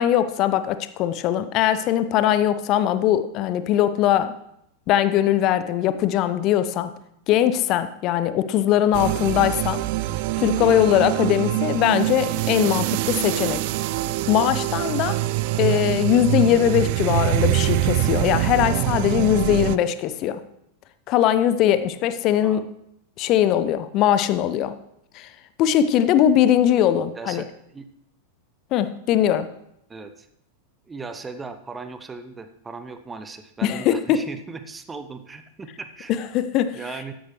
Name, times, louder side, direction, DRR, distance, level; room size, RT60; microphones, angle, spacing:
voice 1, 0.0-4.3 4.9-6.9 7.3-9.8 10.4-13.6 14.3-15.2 15.5-20.4 21.1-22.6 23.2-24.7 25.1-25.3 25.6-27.4 28.7-29.5 33.6-34.2 36.1-36.8, left 11 dB, 40° left, 13 dB, 0.6 m, -21 dB
sound 1, 8.9-19.8, right 16 dB, 50° right, 0.3 m, -24 dB
voice 2, 27.1-27.9 29.9-30.3 30.9-36.1 36.7-37.1, right 4 dB, 15° right, 9 dB, 0.9 m, -37 dB
13.0 x 10.0 x 3.2 m, 0.77 s
figure-of-eight pair, 90°, 0 cm